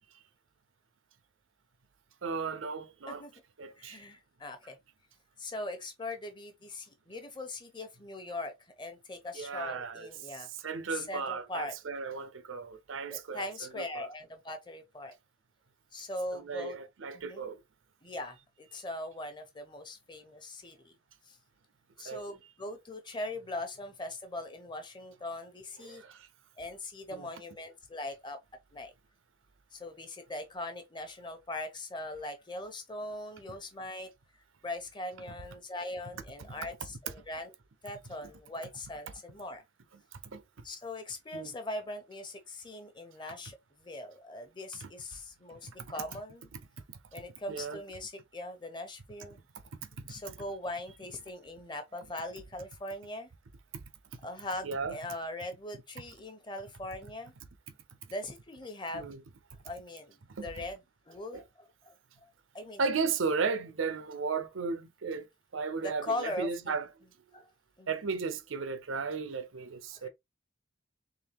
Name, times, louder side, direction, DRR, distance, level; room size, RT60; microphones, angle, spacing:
voice 1, 2.2-3.2 3.6-4.0 9.3-10.1 10.4-13.5 13.7-14.1 16.3-17.6 22.0-22.3 25.8-26.3 27.2-27.3 38.2-38.3 40.3-40.4 41.3-41.5 44.8-44.9 45.7-46.0 46.9-47.0 47.5-47.8 50.0-50.2 54.6-55.0 58.9-59.2 60.3-60.5 61.3-61.4 62.8-65.3 65.5-66.9 67.9-70.1, right 5 dB, 90° right, 0.7 m, -35 dB
voice 2, 3.8-4.8 5.4-10.5 10.9-11.7 13.1-15.1 15.9-16.8 17.1-17.4 18.0-20.9 21.3-21.4 22.0-26.0 26.6-28.4 28.7-28.9 29.7-34.1 34.6-37.5 37.8-39.6 40.6-46.5 47.1-49.4 50.1-53.3 54.2-57.3 58.1-59.1 59.6-60.8 61.1-61.9 62.5-62.8 65.8-66.7 67.3-67.5 67.8-67.9 68.9-69.0 69.9-70.1, left 1 dB, 25° left, 0.9 m, -40 dB
3.8 x 3.6 x 2.9 m
head